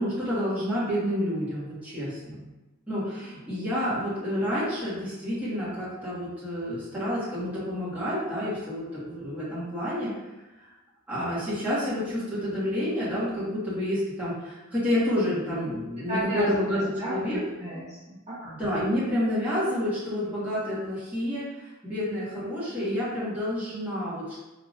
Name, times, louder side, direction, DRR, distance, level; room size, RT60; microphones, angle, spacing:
voice 1, 0.0-2.4 2.9-10.1 11.1-17.4 18.4-24.4, equal, 10° right, -12 dB, 1.4 m, -29 dB
voice 2, 16.1-18.5, equal, 30° right, -11 dB, 1.2 m, -33 dB
4.8 x 2.8 x 2.6 m, 1.1 s
head